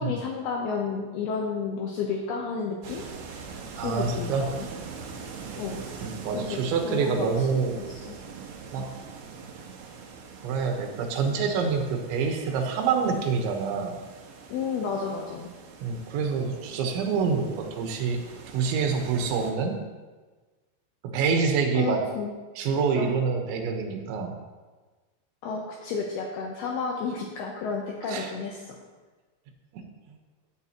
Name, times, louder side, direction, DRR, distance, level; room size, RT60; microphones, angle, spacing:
voice 1, 0.0-3.0 3.7-4.7 5.6-5.8 6.3-8.2 8.8-8.9 14.5-15.5 21.7-22.3 23.0-23.2 25.4-28.8, left 5 dB, 75° left, 0 dB, 2.5 m, -32 dB
sound 1, 2.8-19.5, right 5 dB, 65° right, 2.3 m, -43 dB
voice 2, 3.8-4.5 6.0-7.8 8.7-8.9 10.4-13.9 15.8-18.2 18.5-19.8 21.1-22.0 22.6-24.3 28.1-28.3 29.7-29.8, right 5 dB, 85° right, 3 dB, 3.5 m, -26 dB
15.5 x 9.4 x 2.9 m, 1.3 s
omnidirectional pair, 5.1 m